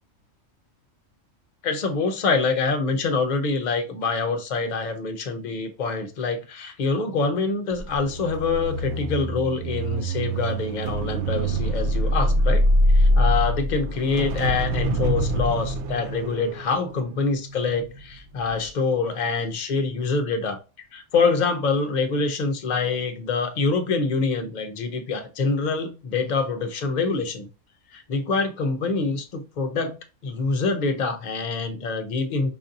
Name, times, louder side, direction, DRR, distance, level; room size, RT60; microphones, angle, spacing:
voice 1, 1.6-12.6 12.9-20.6 20.9-27.5 27.9-32.5, left 4 dB, 50° left, 0.5 m, -25 dB
sound 1, 7.7-18.0 18.4-18.7, equal, 65° right, 0.8 m, -24 dB
5.0 x 2.6 x 2.6 m
omnidirectional pair, 1.4 m